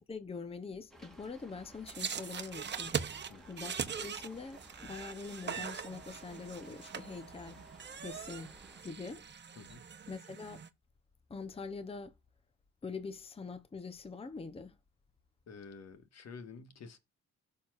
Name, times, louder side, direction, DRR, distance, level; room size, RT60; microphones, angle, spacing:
voice 1, 0.0-3.0 3.5-7.7 8.0-8.5 8.8-9.2 10.1-10.6 11.3-12.2 12.8-14.8, left 4 dB, 20° left, 0.8 m, -44 dB
Rain, 0.9-8.8, right 1 dB, ahead, 2.8 m, -57 dB
sound 1, 1.9-10.7, right 7 dB, 35° right, 1.0 m, -41 dB
voice 2, 9.5-9.9 15.5-17.0, left 5 dB, 60° left, 1.6 m, -50 dB
17.0 x 5.7 x 2.5 m
cardioid pair, 90°, 30 cm